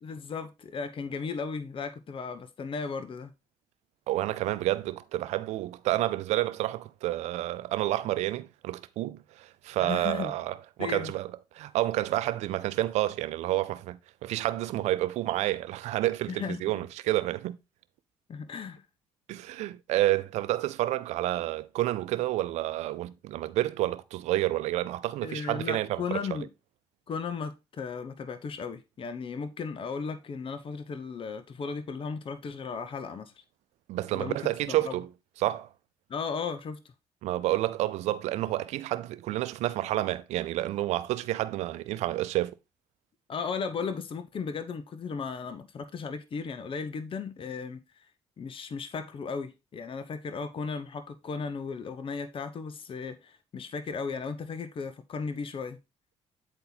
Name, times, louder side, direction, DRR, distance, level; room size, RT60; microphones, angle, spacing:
voice 1, 0.0-3.3 9.8-10.3 10.8-11.1 16.3-16.9 18.3-18.8 25.2-26.5 27.1-33.4 34.1-34.9 36.1-36.8 43.3-48.1 48.4-55.8, left 5 dB, 50° left, 1.0 m, -36 dB
voice 2, 4.1-11.3 11.6-17.6 19.3-26.2 33.9-35.1 35.4-35.7 37.2-42.6, right 15 dB, 90° right, 0.6 m, -29 dB
8.9 x 4.2 x 4.0 m
cardioid pair, 70°, 11 cm